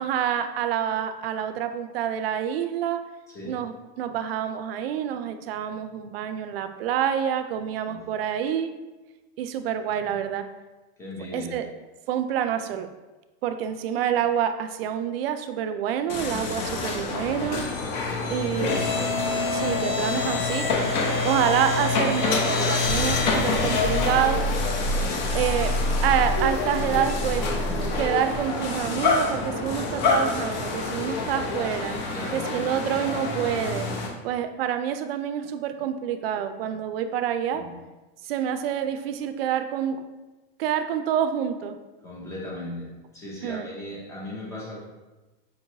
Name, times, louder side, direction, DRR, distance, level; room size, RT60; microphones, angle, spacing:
voice 1, 0.0-3.0 3.4-8.7 9.4-10.5 11.3-11.7 12.1-12.9 13.4-17.6 18.3-18.8 19.5-20.7 21.2-24.5 25.3-25.7 26.0-27.5 28.0-32.0 32.3-33.9 34.2-37.6 38.2-40.0 40.6-41.8 43.4-43.7, right 9 dB, 75° right, 9 dB, 0.4 m, -27 dB
voice 2, 3.3-3.6 7.9-8.1 10.0-10.2 11.0-11.6 18.1-18.6 24.9-25.4 32.1-32.5 37.5-37.8 42.0-44.8, left 1 dB, 10° left, -4 dB, 0.5 m, -38 dB
sound 1, 16.1-34.1, left 3 dB, 45° left, 0.8 m, -26 dB
5.2 x 3.0 x 2.7 m, 1.1 s
supercardioid pair, 175°, 30 cm